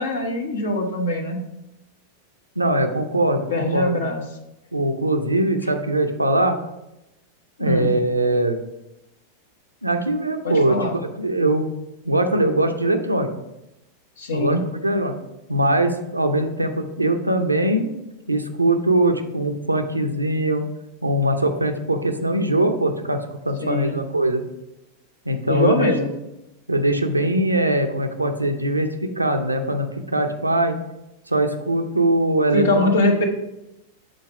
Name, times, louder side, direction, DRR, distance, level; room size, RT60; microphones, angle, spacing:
voice 1, 0.0-1.4 3.5-4.2 5.6-5.7 7.6-7.9 10.4-11.0 14.2-14.7 23.6-24.0 25.5-26.1 32.5-33.3, left 2 dB, 65° left, 4 dB, 1.0 m, -22 dB
voice 2, 2.6-4.0 4.7-6.6 7.6-8.6 9.8-10.8 11.2-11.7 12.0-13.3 14.3-14.6 14.8-15.1 15.5-17.9 18.3-20.6 21.0-23.2 23.4-24.4 25.3-25.9 26.7-30.8 31.3-32.9, right 1 dB, 85° right, 6 dB, 0.6 m, -21 dB
6.4 x 4.1 x 4.7 m, 0.91 s
figure-of-eight pair, 90°, 0 cm